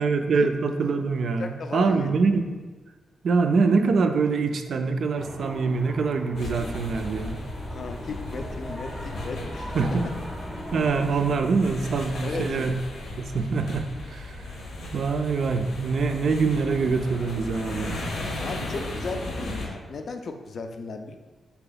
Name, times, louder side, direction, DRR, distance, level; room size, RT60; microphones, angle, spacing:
voice 1, 0.0-2.6 3.2-7.4 9.7-10.1 10.7-12.8 13.1-14.5 14.9-18.1, right 4 dB, 60° right, 7 dB, 0.3 m, -24 dB
voice 2, 1.4-2.2 7.7-9.7 12.2-12.7 18.4-21.2, left 3 dB, 50° left, 6 dB, 0.4 m, -35 dB
sound 1, 5.2-11.1, left 1 dB, ahead, 0.6 m, -39 dB
sound 2, 6.4-19.7, left 2 dB, 75° left, 0.7 m, -36 dB
4.1 x 2.8 x 3.9 m, 1.3 s
wide cardioid pair, 130°, 0 cm